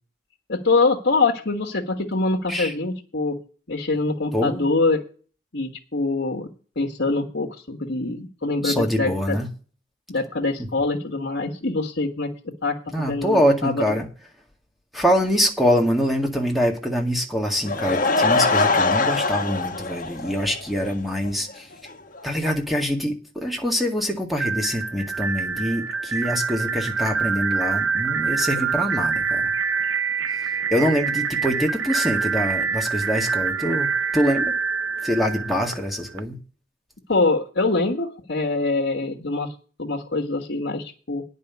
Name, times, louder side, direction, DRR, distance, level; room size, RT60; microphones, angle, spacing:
voice 1, 0.5-3.4 3.7-5.0 5.5-6.5 6.7-9.4 10.1-13.8 28.6-28.7 37.1-39.5 39.8-41.2, left 3 dB, 65° left, 0 dB, 1.5 m, -24 dB
voice 2, 4.3-4.7 8.6-9.5 12.9-14.1 14.9-21.7 22.2-29.5 30.4-34.5 35.0-36.4, equal, ahead, 2 dB, 1.9 m, -24 dB
Laughter / Crowd, 17.5-20.9 21.3-21.4 21.9-22.0 22.2-22.3, left 3 dB, 45° left, 1.4 m, -22 dB
sound 1, 24.4-36.2, right 5 dB, 80° right, 0.8 m, -26 dB
9.8 x 5.4 x 8.1 m, 0.38 s
head